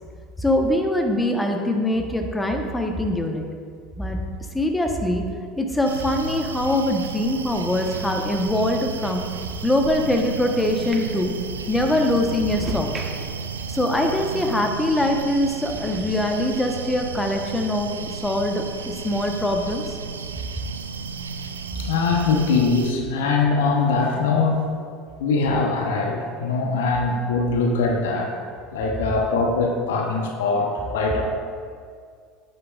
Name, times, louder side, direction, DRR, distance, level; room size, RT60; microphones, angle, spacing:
voice 1, 0.4-3.5 4.0-4.2 4.5-5.2 5.6-9.2 9.6-11.3 11.7-12.9 13.7-20.0, left 1 dB, 10° left, 3 dB, 1.1 m, -23 dB
sound 1, 5.8-22.9, right 5 dB, 85° right, 0.4 m, -33 dB
sound 2, 7.2-14.9 15.3-16.2, right 1 dB, 25° right, 1.2 m, -41 dB
voice 2, 21.7-24.7 25.2-28.4 28.7-31.2, left 4 dB, 70° left, 2 dB, 0.9 m, -22 dB
9.4 x 8.8 x 2.5 m, 2.1 s
hypercardioid pair, 75°, 0 cm